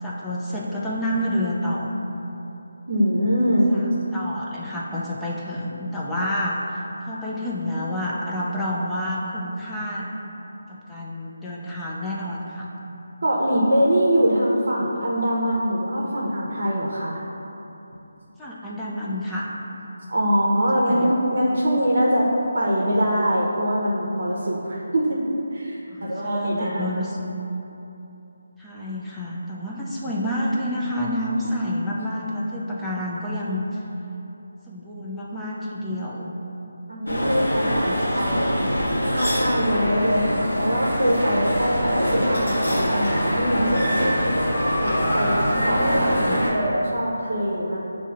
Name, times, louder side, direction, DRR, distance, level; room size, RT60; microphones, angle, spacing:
voice 1, 0.0-1.9 3.7-10.1 10.7-12.7 18.4-19.5 20.8-21.1 22.9-23.0 25.9-27.2 28.6-33.8 34.7-36.3 37.8-38.7 45.3-46.4, left 1 dB, 5° left, -7 dB, 0.4 m, -29 dB
voice 2, 2.9-3.7 13.2-17.2 20.1-22.3 22.5-26.9 36.9-38.6 39.1-44.3 44.8-47.8, equal, 65° right, -5 dB, 0.6 m, -23 dB
sound 1, 37.1-46.5, equal, 75° left, 1.1 m, -23 dB
7.0 x 2.7 x 2.4 m, 3.0 s
figure-of-eight pair, 155°, 0 cm